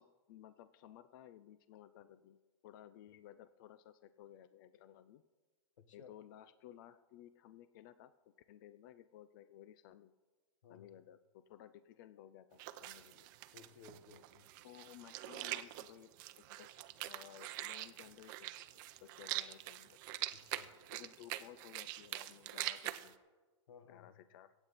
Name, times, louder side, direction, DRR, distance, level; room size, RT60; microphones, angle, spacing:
voice 1, 0.0-2.4 2.6-5.2 5.9-8.1 8.5-10.1 10.7-13.3 14.6-20.0 20.9-23.2 23.8-24.5, left 12 dB, 45° left, 13 dB, 0.5 m, -57 dB
voice 2, 5.8-6.1 10.6-10.9 13.5-14.5 20.3-20.7 23.7-24.1, left 6 dB, 85° left, 10 dB, 1.5 m, -58 dB
sound 1, 12.6-23.1, right 15 dB, 40° right, 0.7 m, -44 dB
23.0 x 8.9 x 4.1 m, 1.4 s
supercardioid pair, 160°, 16 cm